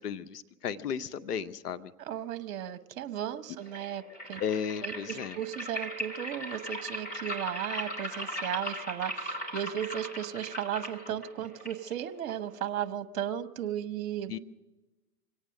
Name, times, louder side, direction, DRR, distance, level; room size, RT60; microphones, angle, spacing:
voice 1, 0.0-1.9 4.4-5.4 14.3-14.4, left 7 dB, 80° left, 13 dB, 0.8 m, -34 dB
voice 2, 2.0-4.0 4.3-4.4 4.8-14.3, right 10 dB, 60° right, 11 dB, 0.9 m, -35 dB
sound 1, 3.6-12.6, equal, 20° left, 3.3 m, -39 dB
25.0 x 9.0 x 6.5 m, 1.1 s
hypercardioid pair, 110°, 46 cm